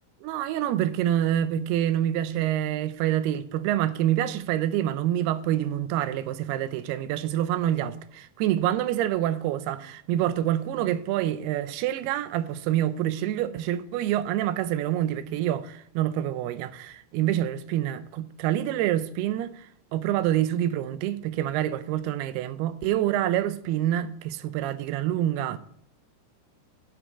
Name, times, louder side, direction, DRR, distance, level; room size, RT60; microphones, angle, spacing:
voice 1, 0.2-25.6, right 12 dB, 90° right, 2.6 m, -27 dB
7.4 x 7.1 x 8.1 m
omnidirectional pair, 4.5 m